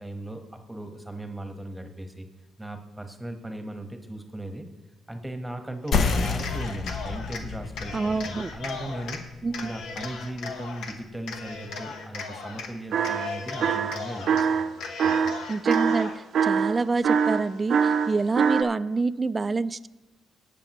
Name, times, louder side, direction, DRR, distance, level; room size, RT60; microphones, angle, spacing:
voice 1, 0.0-2.3 2.6-4.7 5.1-9.2 9.6-15.3, right 1 dB, 5° right, 6 dB, 1.2 m, -38 dB
Cheering, 5.8-7.4 7.8-9.2 9.5-10.9 11.3-12.7 13.0-14.4 14.8-16.2, left 4 dB, 85° left, 1.1 m, -37 dB
sound 1, 5.9-11.0, left 4 dB, 65° left, 0.8 m, -31 dB
voice 2, 7.9-8.5 9.4-9.7 15.5-19.9, right 3 dB, 30° right, 14 dB, 0.4 m, -27 dB
sound 2, 12.9-13.3 13.6-14.7 15.0-18.6, right 6 dB, 65° right, 0.6 m, -23 dB
19.0 x 6.9 x 3.0 m, 1.1 s
cardioid pair, 90°, 0 cm